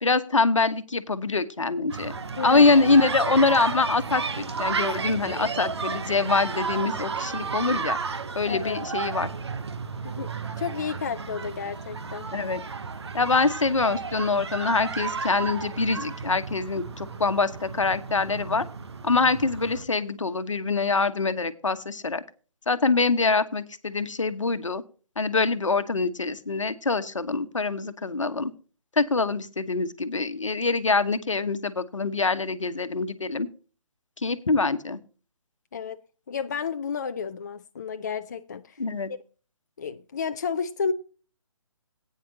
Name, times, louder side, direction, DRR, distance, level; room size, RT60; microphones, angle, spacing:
voice 1, 0.0-2.1 2.4-8.0 8.3-9.3 12.3-12.6 13.1-18.7 19.0-22.2 22.7-24.8 25.2-28.5 29.0-33.5 34.2-35.0 38.8-39.1, left 3 dB, 65° left, 1.2 m, -24 dB
sound 1, 1.9-19.8, right 5 dB, 55° right, 1.0 m, -33 dB
voice 2, 8.4-8.8 10.0-10.3 10.6-12.3 35.7-36.0 36.3-38.8 39.1-39.2 39.8-40.9, left 6 dB, 35° left, 0.5 m, -31 dB
17.5 x 9.3 x 2.8 m
figure-of-eight pair, 145°, 17 cm